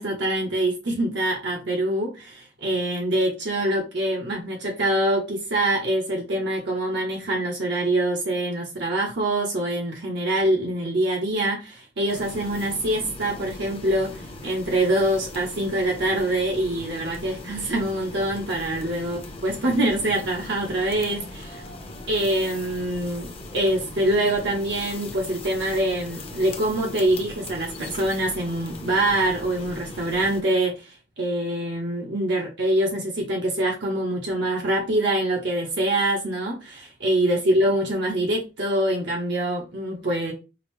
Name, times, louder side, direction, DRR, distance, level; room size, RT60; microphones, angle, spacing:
voice 1, 0.0-21.6 22.1-23.3 23.5-40.3, right 1 dB, 65° right, 0.9 m, -25 dB
sound 1, 12.1-30.4, left 2 dB, 30° left, 0.7 m, -39 dB
5.0 x 2.0 x 3.0 m
head